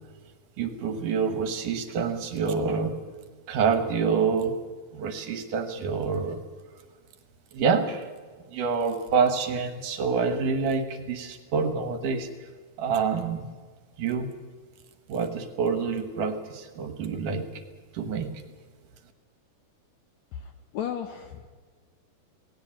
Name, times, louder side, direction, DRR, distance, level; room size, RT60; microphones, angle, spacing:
voice 1, 0.6-2.9 3.5-4.5 4.9-6.4 7.5-8.1 8.5-12.3 12.8-13.5 14.0-14.3 15.1-17.6 17.9-18.3, right 5 dB, 65° right, 8 dB, 2.6 m, -27 dB
voice 2, 20.3-21.5, left 9 dB, 70° left, 7 dB, 1.7 m, -35 dB
18.5 x 17.5 x 8.8 m, 1.5 s
omnidirectional pair, 4.2 m